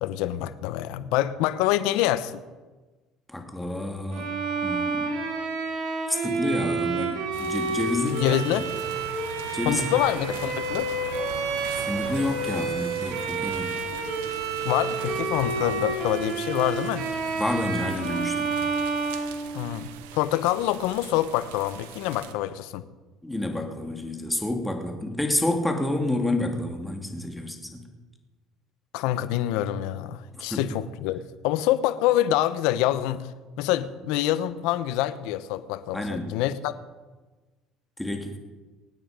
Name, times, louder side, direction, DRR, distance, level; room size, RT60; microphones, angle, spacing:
voice 1, 0.0-2.4 8.0-8.6 9.6-10.9 14.6-17.1 19.5-22.8 28.9-33.3 33.6-36.7, left 13 dB, 80° left, 0.9 m, -26 dB
voice 2, 3.3-4.4 4.6-5.1 6.1-8.7 9.5-9.8 11.7-13.8 17.3-18.5 23.2-27.8 30.3-30.7 35.9-36.4 38.0-38.4, left 1 dB, 5° left, 2.7 m, -29 dB
Bowed string instrument, 4.1-20.0, right 3 dB, 75° right, 6.1 m, -29 dB
sound 1, 7.3-22.3, right 9 dB, 90° right, 1.1 m, -41 dB
24.5 x 9.3 x 5.2 m
supercardioid pair, 90°, 0 cm